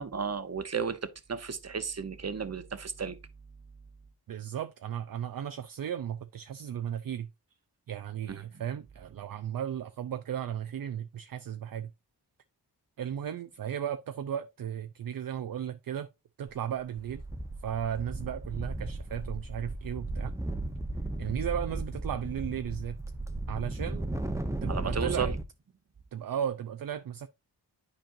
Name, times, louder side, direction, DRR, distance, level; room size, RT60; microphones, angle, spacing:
voice 1, 0.0-3.2 8.3-8.6 24.7-25.3, right 6 dB, 40° right, 0.9 m, -34 dB
voice 2, 4.3-7.3 7.9-11.9 13.0-16.1 16.4-17.2 17.6-20.3 21.2-23.0 23.5-24.1 24.6-25.3 26.1-27.3, right 9 dB, 60° right, 0.5 m, -35 dB
sound 1, 16.5-16.7 17.0-25.4, right 2 dB, 5° right, 0.9 m, -35 dB
10.5 x 4.4 x 2.6 m
cardioid pair, 50°, 40 cm